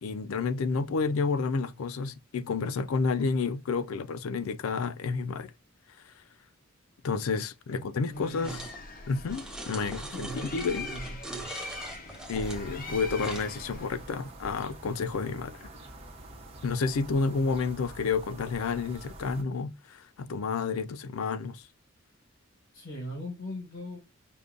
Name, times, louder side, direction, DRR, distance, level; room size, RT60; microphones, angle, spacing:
voice 1, 0.0-5.5 7.0-8.6 9.1-10.9 12.3-15.7 16.6-21.6, left 4 dB, 85° left, 0.4 m, -30 dB
voice 2, 8.1-8.6 10.1-10.5 10.8-11.5 22.7-24.0, equal, 65° left, 1.2 m, -40 dB
Bird, 8.1-14.1, left 2 dB, 45° left, 0.7 m, -42 dB
sound 1, 8.4-8.8 9.3-13.5, right 2 dB, 5° right, 0.5 m, -42 dB
sound 2, 12.4-19.4, right 1 dB, 30° right, 0.8 m, -47 dB
5.2 x 2.2 x 2.4 m
head